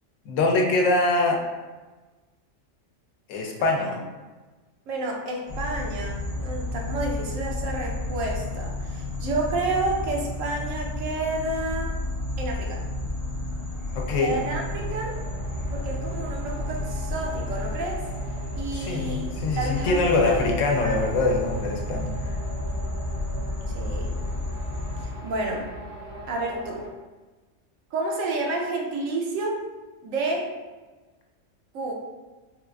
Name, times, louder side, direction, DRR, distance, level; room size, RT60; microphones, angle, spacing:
voice 1, 0.3-1.4 3.3-3.9 13.9-14.3 18.7-22.1, left 3 dB, 80° left, 1 dB, 0.9 m, -23 dB
voice 2, 3.6-4.0 4.9-12.0 12.4-12.8 14.2-15.2 15.7-18.1 18.6-19.3 19.6-20.3 20.8-21.0 23.7-24.2 25.2-25.7 26.3-26.8 27.9-29.6 30.0-30.5 31.7-31.9, right 2 dB, 85° right, 0 dB, 1.0 m, -30 dB
sound 1, 5.5-25.1, left 1 dB, 40° left, 0.6 m, -31 dB
sound 2, 14.1-26.9, equal, 40° right, 0.5 m, -41 dB
3.9 x 2.4 x 2.2 m, 1.3 s
omnidirectional pair, 1.3 m